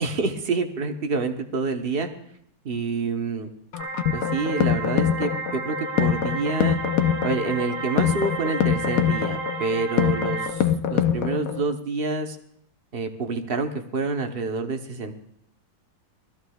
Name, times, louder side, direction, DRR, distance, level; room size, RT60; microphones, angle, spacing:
voice 1, 0.0-2.1 2.6-3.5 4.1-6.8 7.2-12.4 12.9-15.1, right 3 dB, 45° right, 6 dB, 0.7 m, -27 dB
sound 1, 3.7-11.7, left 9 dB, 75° left, 0.8 m, -24 dB
sound 2, 3.8-10.5, right 2 dB, 85° right, 2.3 m, -32 dB
22.5 x 14.5 x 2.3 m, 0.68 s
omnidirectional pair, 2.2 m